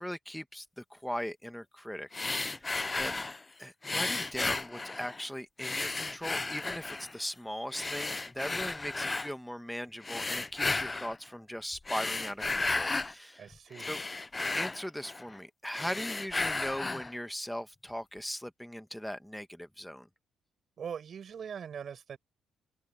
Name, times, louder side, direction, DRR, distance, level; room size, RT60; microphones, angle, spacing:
voice 1, 0.0-2.1 2.4-2.7 2.9-3.2 3.6-13.5 13.9-14.0 14.5-20.1, equal, ahead, 1.4 m, -39 dB
sound 1, 2.1-3.4 3.8-5.2 5.6-7.2 7.7-9.3 10.0-11.2 11.7-13.1 13.5-15.4 15.7-17.1, left 3 dB, 20° left, 0.6 m, -34 dB
voice 2, 13.4-14.0 20.8-22.2, right 7 dB, 55° right, 7.2 m, -41 dB
open air
cardioid pair, 90°, 0 cm